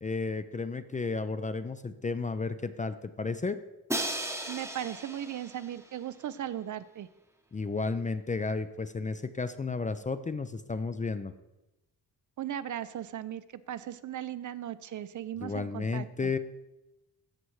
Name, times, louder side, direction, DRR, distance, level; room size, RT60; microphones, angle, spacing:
voice 1, 0.0-3.6 7.5-11.3 15.4-16.4, left 4 dB, 20° left, 11 dB, 0.4 m, -33 dB
Crash cymbal, 3.9-5.9, right 1 dB, 5° right, 0.9 m, -35 dB
voice 2, 4.5-7.1 12.4-13.4 13.7-16.3, right 11 dB, 55° right, 15 dB, 0.5 m, -37 dB
14.5 x 5.7 x 3.1 m, 0.96 s
cardioid pair, 100°, 37 cm